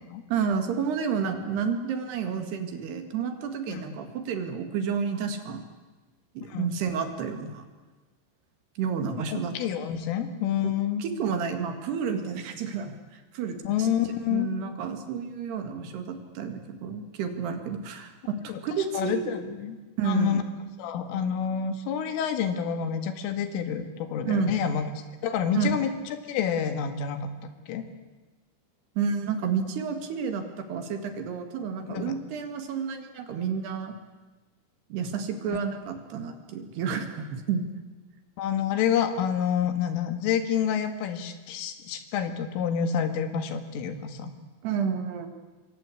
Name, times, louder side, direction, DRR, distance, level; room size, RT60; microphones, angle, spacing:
voice 1, 0.3-5.6 6.4-7.6 8.8-9.5 11.0-13.9 14.3-19.3 20.0-20.4 24.3-24.6 25.5-25.8 29.0-33.9 34.9-37.6 44.6-45.3, right 6 dB, 60° right, 7 dB, 3.7 m, -30 dB
voice 2, 9.2-11.1 13.6-14.5 18.5-18.6 18.9-19.8 20.0-20.4 20.8-24.9 25.2-27.3 27.7-27.8 31.9-32.1 38.4-44.3, left 8 dB, 90° left, 8 dB, 4.5 m, -28 dB
26.5 x 23.5 x 8.5 m, 1.2 s
omnidirectional pair, 5.6 m